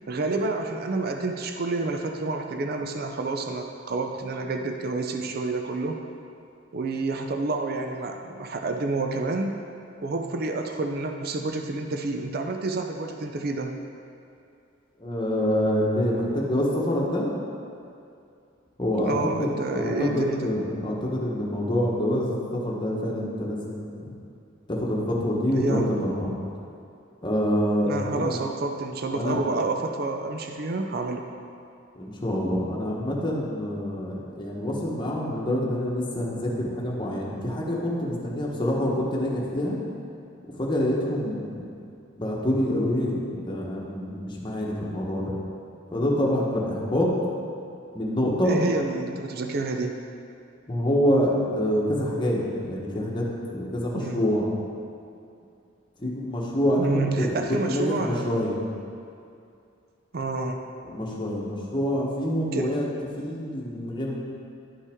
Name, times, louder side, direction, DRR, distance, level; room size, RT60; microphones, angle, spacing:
voice 1, 0.1-6.0 6.7-9.6 10.0-13.7 19.0-20.5 25.5-25.8 27.9-31.2 48.4-50.0 53.9-54.2 56.8-58.4 60.1-60.6 62.5-62.8, right 3 dB, 50° right, 4 dB, 0.5 m, -29 dB
voice 2, 15.0-17.3 18.8-19.1 19.4-24.1 24.7-26.3 27.2-28.4 29.1-29.4 32.0-39.8 40.6-41.7 42.2-45.3 45.9-47.1 47.9-48.6 50.7-52.4 52.6-53.2 53.5-54.5 56.0-57.4 57.7-58.6 60.8-62.8 63.2-64.1, equal, 25° left, -4 dB, 1.2 m, -26 dB
11.0 x 5.5 x 3.6 m, 2.5 s
head